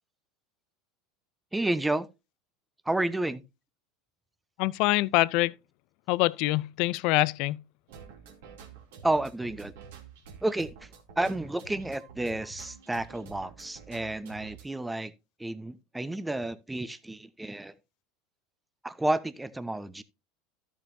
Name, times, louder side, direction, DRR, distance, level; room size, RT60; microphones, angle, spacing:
voice 1, 1.5-2.1 2.8-3.4 9.0-9.7 10.4-10.9 11.2-15.1 15.4-17.7 18.8-20.0, right 2 dB, 10° right, 0.9 m, -31 dB
voice 2, 4.6-5.5 6.1-7.6, left 19 dB, 60° left, 0.4 m, -25 dB
sound 1, 7.9-14.6, right 7 dB, 75° right, 2.7 m, -49 dB
13.0 x 7.2 x 2.7 m
hypercardioid pair, 85°, 0 cm